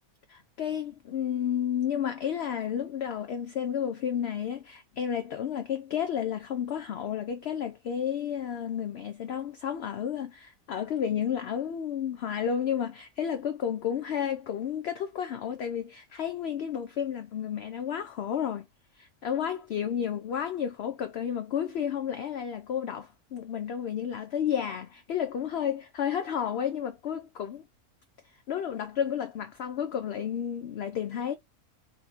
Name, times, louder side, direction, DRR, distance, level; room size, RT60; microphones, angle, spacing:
voice 1, 0.3-18.7 18.9-27.6 28.5-31.3, left 8 dB, 60° left, 0.7 m, -31 dB
5.6 x 2.3 x 3.9 m
omnidirectional pair, 1.4 m